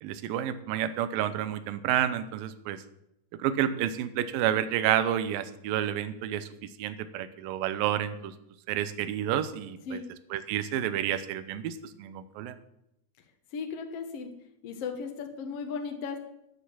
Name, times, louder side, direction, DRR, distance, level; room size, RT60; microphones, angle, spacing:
voice 1, 0.0-2.8 3.4-6.5 6.8-8.3 8.7-10.0 10.3-12.5, right 11 dB, 80° right, 12 dB, 2.1 m, -30 dB
voice 2, 13.5-14.3 14.6-16.2, left 5 dB, 75° left, 5 dB, 1.4 m, -36 dB
13.5 x 6.7 x 7.2 m, 0.82 s
omnidirectional pair, 4.9 m